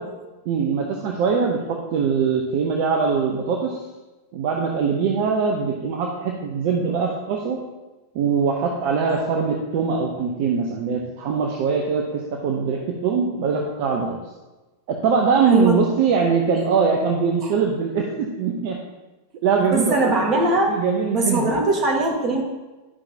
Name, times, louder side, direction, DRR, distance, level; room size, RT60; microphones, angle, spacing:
voice 1, 0.5-3.8 4.3-7.6 8.1-14.2 14.9-18.8 19.4-20.1 20.7-21.6, right 5 dB, 45° right, 1 dB, 0.8 m, -22 dB
voice 2, 19.6-20.7 21.1-22.4, right 2 dB, 30° right, 0 dB, 1.6 m, -21 dB
11.0 x 5.7 x 2.8 m, 1.2 s
figure-of-eight pair, 90°, 0 cm